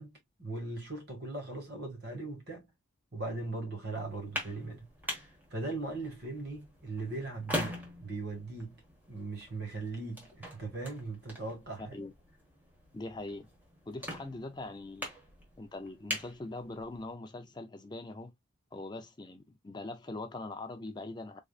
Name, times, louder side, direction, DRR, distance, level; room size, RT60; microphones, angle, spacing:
voice 1, 0.0-2.7 3.1-8.8 9.1-11.9, right 2 dB, 50° right, 1.8 m, -39 dB
sound 1, 4.0-17.1, equal, 10° right, 1.2 m, -43 dB
voice 2, 11.8-12.1 12.9-13.5 13.9-15.1 15.6-18.3 18.7-21.4, left 2 dB, 20° left, 0.4 m, -42 dB
3.7 x 3.2 x 2.3 m
head